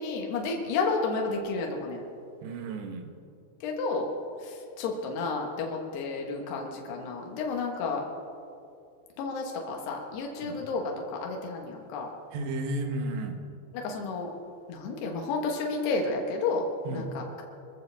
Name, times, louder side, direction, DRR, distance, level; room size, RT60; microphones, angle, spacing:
voice 1, 0.0-2.0 3.6-4.1 4.4-8.0 9.2-12.1 13.7-14.3 14.7-17.4, left 3 dB, 70° left, 1 dB, 3.4 m, -31 dB
voice 2, 2.4-3.1 10.4-10.6 12.3-13.4 16.8-17.1, right 2 dB, 75° right, 5 dB, 3.3 m, -33 dB
25.0 x 14.0 x 3.5 m, 2.5 s
omnidirectional pair, 5.1 m